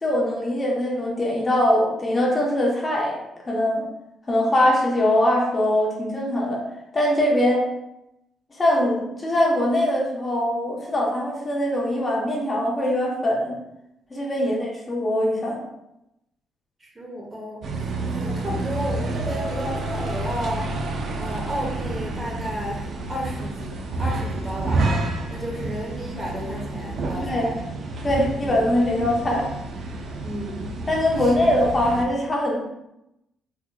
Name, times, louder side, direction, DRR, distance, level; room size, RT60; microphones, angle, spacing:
voice 1, 0.0-3.2 3.5-3.8 4.3-6.6 6.9-7.6 8.5-13.6 14.1-15.6 27.2-27.5 28.0-29.5 30.9-32.6, left 1 dB, 30° left, -3 dB, 0.9 m, -22 dB
voice 2, 14.3-14.6 16.8-20.8 21.2-24.9 25.3-27.5 28.4-28.6 30.2-30.8 31.2-31.5, equal, 25° right, -2 dB, 1.0 m, -33 dB
sound 1, 17.6-32.0, right 2 dB, 60° right, 0.4 m, -29 dB
3.6 x 2.8 x 2.2 m, 0.86 s
cardioid pair, 90°, 0 cm